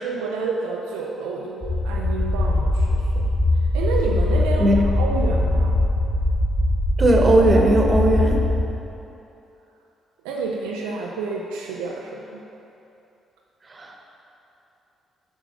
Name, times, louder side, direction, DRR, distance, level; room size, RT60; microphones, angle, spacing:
voice 1, 0.0-3.3 3.7-5.8 10.2-12.4, right 4 dB, 70° right, -1 dB, 0.5 m, -29 dB
sound 1, 1.6-8.6, left 2 dB, 20° left, 1.4 m, -21 dB
voice 2, 7.0-8.4 13.7-14.2, right 1 dB, 30° right, 1 dB, 1.3 m, -18 dB
7.1 x 6.1 x 6.0 m, 2.9 s
figure-of-eight pair, 40°, 0 cm